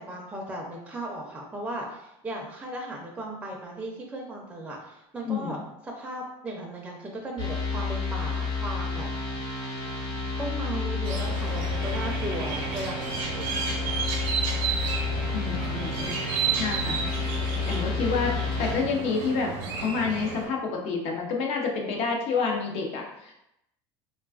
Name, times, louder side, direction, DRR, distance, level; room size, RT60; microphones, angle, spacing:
voice 1, 0.0-9.1 10.4-13.6, right 1 dB, 10° right, -1 dB, 0.5 m, -36 dB
voice 2, 5.2-5.6 15.3-16.2 16.6-17.3 17.6-19.5 19.8-23.3, left 4 dB, 55° left, 1 dB, 0.7 m, -29 dB
sound 1, 7.4-18.7, left 4 dB, 30° left, 0.9 m, -30 dB
sound 2, 11.0-20.5, right 5 dB, 75° right, 0.7 m, -32 dB
3.2 x 2.3 x 2.3 m, 0.83 s
supercardioid pair, 120°, 12 cm